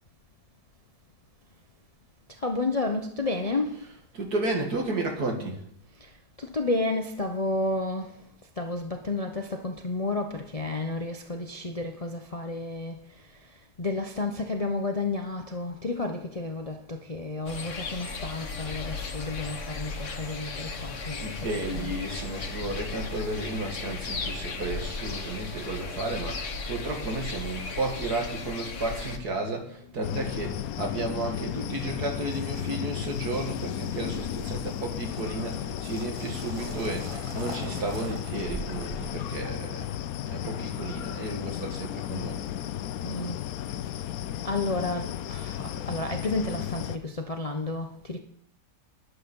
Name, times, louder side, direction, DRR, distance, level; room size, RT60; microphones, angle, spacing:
voice 1, 2.4-3.8 6.4-8.1 8.6-13.0 13.8-21.3 21.5-21.9 30.3-30.4 31.3-31.9 43.0-43.4 44.4-48.2, left 2 dB, 35° left, 0.6 m, -31 dB
voice 2, 3.8-5.6 21.2-40.0 40.2-42.4, right 2 dB, 65° right, 2.7 m, -33 dB
sound 1, 17.5-29.2, left 3 dB, 50° left, 1.4 m, -36 dB
sound 2, 30.0-47.0, left 11 dB, 70° left, 1.0 m, -34 dB
sound 3, 34.1-39.5, right 4 dB, 40° right, 0.4 m, -43 dB
11.0 x 10.0 x 5.5 m
omnidirectional pair, 1.8 m